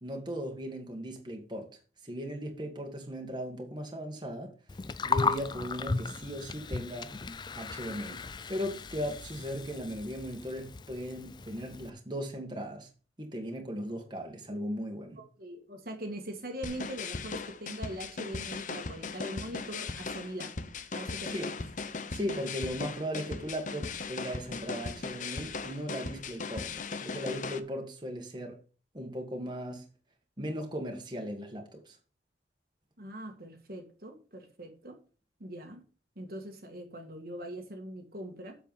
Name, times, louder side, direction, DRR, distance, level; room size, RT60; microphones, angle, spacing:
voice 1, 0.0-1.7 2.0-4.5 5.0-7.1 7.5-8.2 8.5-12.9 13.2-15.2 21.3-21.5 22.1-26.7 27.0-28.6 28.9-29.9 30.4-32.0, equal, 25° right, 1.8 m, -37 dB
Gurgling, 4.7-11.9, left 4 dB, 25° left, 0.4 m, -36 dB
voice 2, 15.2-20.5 20.9-21.5 33.0-35.0 35.4-35.8 36.2-38.6, right 1 dB, 55° right, 1.7 m, -42 dB
sound 1, 16.6-27.6, left 4 dB, 45° left, 0.8 m, -38 dB
7.9 x 7.0 x 5.5 m
head